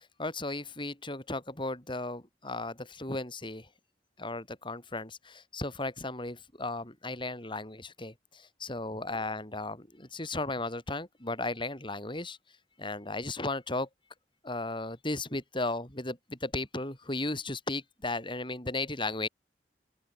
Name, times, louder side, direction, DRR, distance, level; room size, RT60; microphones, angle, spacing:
voice 1, 0.0-3.7 4.2-12.4 12.8-13.9 14.4-19.3, left 2 dB, 30° left, 5.4 m, -35 dB
open air
head